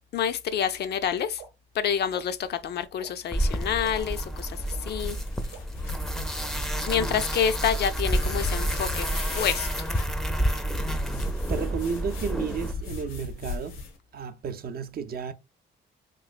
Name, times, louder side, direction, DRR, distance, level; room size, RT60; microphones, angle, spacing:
voice 1, 0.1-1.4 1.7-5.2 6.8-9.1 9.3-9.9, left 8 dB, 55° left, 0.4 m, -28 dB
sound 1, 1.4-1.5 2.1-2.2 3.0-3.1 3.8-3.9 4.7-4.8 5.5-5.6 6.4-6.5 7.3-7.5 8.3-8.4, right 8 dB, 90° right, 0.8 m, -44 dB
sound 2, 3.3-12.7, right 1 dB, ahead, 0.5 m, -29 dB
sound 3, 5.0-7.3 8.1-10.0 10.7-14.0, left 4 dB, 80° left, 0.9 m, -38 dB
voice 2, 6.8-7.3 10.9-11.2 11.5-13.9 14.1-15.3, right 6 dB, 50° right, 0.5 m, -33 dB
3.1 x 3.0 x 2.4 m
cardioid pair, 90°, 20 cm